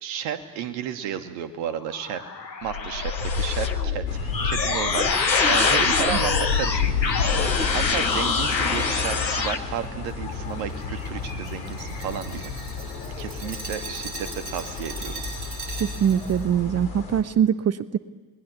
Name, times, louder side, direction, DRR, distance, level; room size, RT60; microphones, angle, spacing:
voice 1, 0.0-2.2 2.6-7.3 7.7-12.5 13.2-15.2, right 8 dB, 60° right, 7 dB, 2.5 m, -33 dB
sound 1, 1.9-9.6, left 5 dB, 85° left, 1.4 m, -24 dB
sound 2, 4.1-17.2, left 4 dB, 65° left, 4.7 m, -34 dB
Glass, 10.1-16.4, right 3 dB, 75° right, 7.1 m, -39 dB
voice 2, 15.8-18.0, right 9 dB, 30° right, 14 dB, 1.1 m, -23 dB
30.0 x 21.0 x 7.2 m, 1.3 s
figure-of-eight pair, 60°, 50 cm